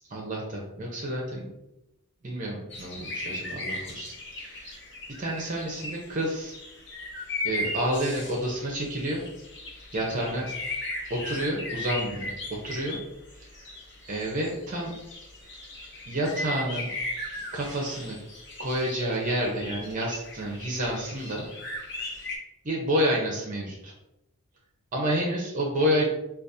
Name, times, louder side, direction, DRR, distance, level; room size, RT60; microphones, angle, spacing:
voice 1, 0.1-1.5 2.2-4.8 5.2-6.6 7.4-9.3 9.9-10.5 11.1-13.0 13.4-13.7 14.1-14.9 16.1-16.9 17.5-18.2 18.6-21.5 22.1-22.4 22.6-23.9 24.9-26.1, equal, 35° right, -2 dB, 0.6 m, -29 dB
sound 1, 2.7-22.4, left 2 dB, 50° left, 0.7 m, -37 dB
5.0 x 2.3 x 2.6 m, 0.89 s
head